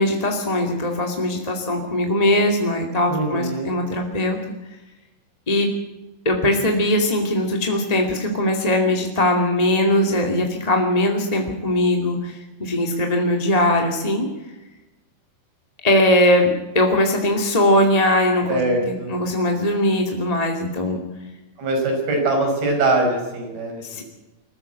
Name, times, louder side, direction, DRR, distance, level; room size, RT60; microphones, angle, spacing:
voice 1, 0.0-4.4 5.5-5.7 6.2-14.3 15.8-21.0 23.8-24.0, left 1 dB, 15° left, 2 dB, 1.7 m, -20 dB
voice 2, 3.1-3.8 18.5-19.1 21.6-24.0, right 2 dB, 80° right, 2 dB, 7.5 m, -22 dB
22.5 x 15.0 x 8.2 m, 1.1 s
omnidirectional pair, 4.3 m